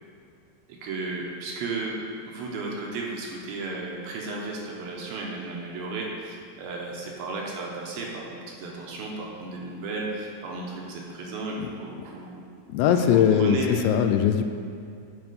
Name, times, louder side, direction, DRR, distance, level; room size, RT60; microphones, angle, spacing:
voice 1, 0.8-2.0 2.3-12.5 12.8-13.9, right 3 dB, 75° right, -2 dB, 2.5 m, -34 dB
voice 2, 12.7-14.4, left 8 dB, 85° left, 7 dB, 2.6 m, -20 dB
9.5 x 4.8 x 5.4 m, 2.4 s
omnidirectional pair, 4.8 m